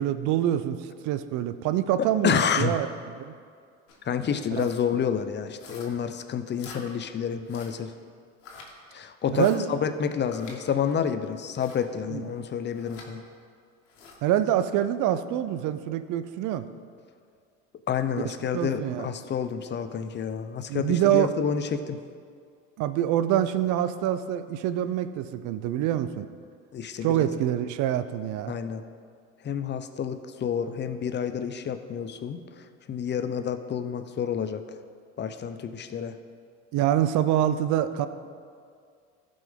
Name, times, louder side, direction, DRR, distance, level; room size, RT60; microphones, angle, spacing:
voice 1, 0.0-2.9 3.2-3.3 4.6-4.7 9.3-9.7 12.1-12.2 14.2-16.7 18.5-19.1 20.7-21.3 22.8-26.3 27.0-28.5 36.7-38.1, right 11 dB, 55° right, 12 dB, 0.6 m, -25 dB
voice 2, 2.2-2.8 4.0-7.9 8.9-13.2 17.9-22.0 26.7-27.3 28.5-28.8 29.4-34.8 35.2-36.2, left 7 dB, 30° left, 10 dB, 0.7 m, -29 dB
sound 1, 3.9-4.1 4.5-4.9 5.6-6.1 6.6-6.8 7.5-7.8 8.4-8.7 9.3-9.6 10.3-10.6 11.5-11.9 12.7-13.1 13.9-14.2, left 4 dB, 85° left, 1.6 m, -47 dB
15.0 x 5.3 x 3.7 m, 2.2 s
hypercardioid pair, 75°, 36 cm